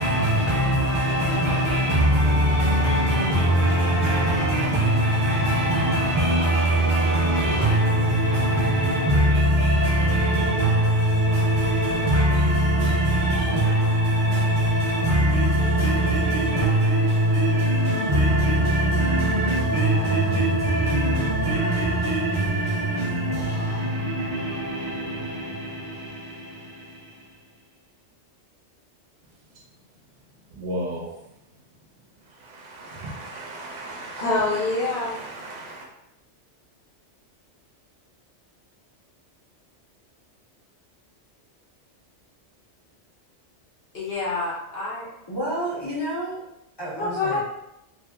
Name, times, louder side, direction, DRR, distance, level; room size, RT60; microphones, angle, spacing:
voice 1, 0.0-27.3, right 1 dB, 30° right, 0.6 m, -22 dB
voice 2, 30.5-31.2 32.3-35.9, right 1 dB, 85° right, 0.9 m, -35 dB
voice 3, 34.2-35.2 43.9-45.1 46.9-47.4, left 3 dB, 60° left, 0.9 m, -26 dB
voice 4, 45.3-46.4 46.8-47.4, right 1 dB, 30° left, 0.6 m, -30 dB
2.7 x 2.7 x 2.2 m
omnidirectional pair, 1.2 m